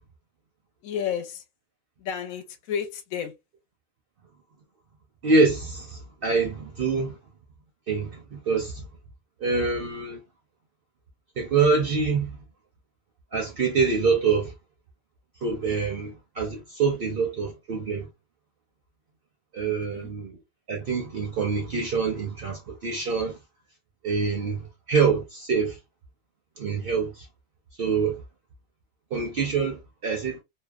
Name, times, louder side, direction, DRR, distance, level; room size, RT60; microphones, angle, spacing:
voice 1, 0.8-1.4 2.0-3.3 19.6-20.1, left 8 dB, 75° left, 1.0 m, -32 dB
voice 2, 5.2-7.2 7.9-8.9 9.4-10.2 11.4-12.4 13.3-14.5 15.4-18.1 19.5-20.4 20.7-23.4 24.0-25.8 26.6-27.3 27.8-28.2 29.1-30.4, right 4 dB, 55° right, 0.6 m, -25 dB
2.7 x 2.0 x 2.2 m
omnidirectional pair, 1.5 m